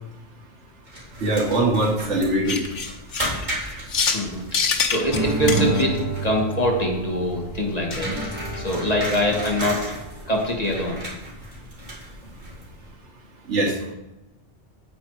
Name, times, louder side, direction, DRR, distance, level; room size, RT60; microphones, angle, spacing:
sound 1, 0.9-12.9, equal, 40° right, 3.1 m, -35 dB
voice 1, 1.2-2.7 13.5-13.9, right 2 dB, 75° right, 2 dB, 1.8 m, -22 dB
sound 2, 2.5-4.3 4.5-5.8 7.9-8.0 8.3-8.4 8.7-8.8 9.1-9.2, left 5 dB, 85° left, 1.3 m, -25 dB
voice 2, 4.1-8.1 8.6-9.8 10.3-11.0, equal, 35° left, 0 dB, 1.8 m, -24 dB
sound 3, 5.1-11.3, right 3 dB, 15° right, 2.1 m, -30 dB
9.4 x 8.4 x 4.8 m, 1.0 s
omnidirectional pair, 1.2 m